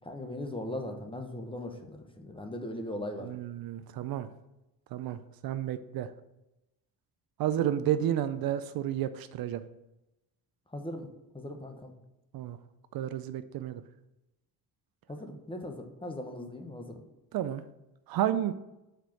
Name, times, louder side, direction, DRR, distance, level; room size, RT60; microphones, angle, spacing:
voice 1, 0.0-3.3 10.7-11.1 11.3-11.9 15.1-17.0, left 1 dB, 15° left, 4 dB, 1.1 m, -39 dB
voice 2, 3.2-4.3 4.9-5.2 5.4-6.1 7.4-9.6 12.3-12.6 12.9-13.8 17.3-17.6 18.1-18.5, right 11 dB, 65° right, 12 dB, 0.5 m, -31 dB
4.9 x 4.5 x 5.8 m, 0.94 s
cardioid pair, 75°, 38 cm